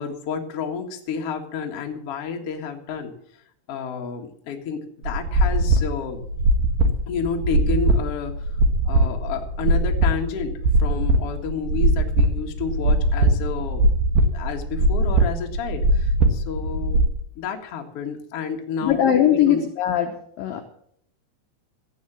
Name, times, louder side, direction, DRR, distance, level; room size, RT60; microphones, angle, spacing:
voice 1, 0.0-3.1 3.7-6.2 7.1-8.6 8.8-13.9 14.3-17.0 17.3-19.6, left 6 dB, 60° left, 2 dB, 1.5 m, -30 dB
sound 1, 5.0-17.1, right 2 dB, 60° right, 2.4 m, -20 dB
voice 2, 18.8-20.6, left 10 dB, 80° left, 4 dB, 2.0 m, -20 dB
14.0 x 9.6 x 7.3 m, 0.68 s
omnidirectional pair, 5.4 m